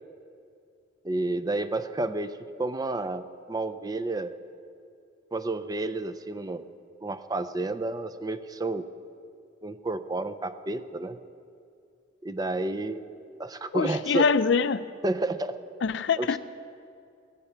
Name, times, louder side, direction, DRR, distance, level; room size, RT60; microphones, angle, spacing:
voice 1, 1.0-4.4 5.3-6.7 7.0-8.9 9.6-11.2 12.2-13.0 13.4-14.3 15.0-15.6 16.2-16.3, right 2 dB, 20° right, 10 dB, 0.4 m, -30 dB
voice 2, 13.7-14.8 15.8-16.4, left 5 dB, 65° left, 14 dB, 0.5 m, -24 dB
16.5 x 14.0 x 4.5 m, 2.4 s
head